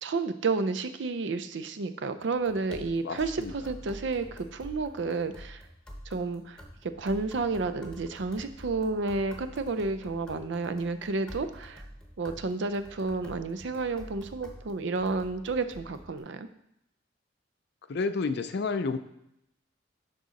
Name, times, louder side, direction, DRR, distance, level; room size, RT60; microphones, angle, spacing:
voice 1, 0.0-5.6 6.1-6.6 7.0-11.8 12.2-16.5, right 3 dB, 65° right, 11 dB, 0.5 m, -31 dB
sound 1, 2.2-16.2, equal, 5° left, 0.9 m, -47 dB
voice 2, 3.0-3.5 17.9-19.0, left 4 dB, 55° left, 11 dB, 0.5 m, -30 dB
11.0 x 3.8 x 4.1 m, 0.82 s
head